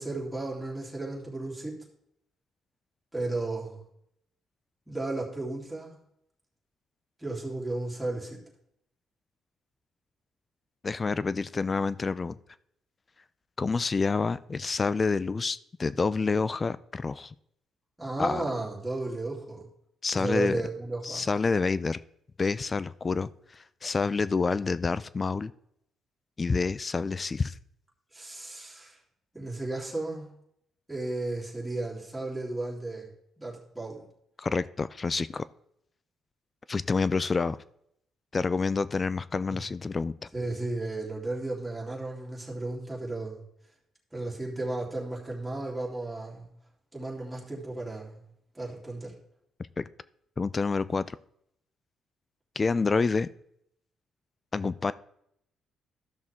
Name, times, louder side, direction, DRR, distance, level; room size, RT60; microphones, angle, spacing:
voice 1, 0.0-1.8 3.1-3.8 4.9-6.0 7.2-8.4 18.0-19.6 20.1-21.2 28.1-29.0 29.3-30.3 30.9-33.1 33.4-34.0 39.5-39.6 40.3-43.4 44.1-46.5 46.9-48.2 48.5-49.1, right 2 dB, 10° right, -4 dB, 3.2 m, -34 dB
voice 2, 10.8-12.4 13.6-17.3 18.2-18.4 20.0-20.6 21.0-22.0 22.4-25.5 26.4-27.5 34.4-35.4 36.7-37.6 38.3-40.1 49.8-49.9 50.4-51.2 52.6-53.3 54.5-54.9, left 4 dB, 30° left, 17 dB, 0.4 m, -28 dB
13.0 x 6.2 x 3.6 m, 0.73 s
cardioid pair, 90°, 0 cm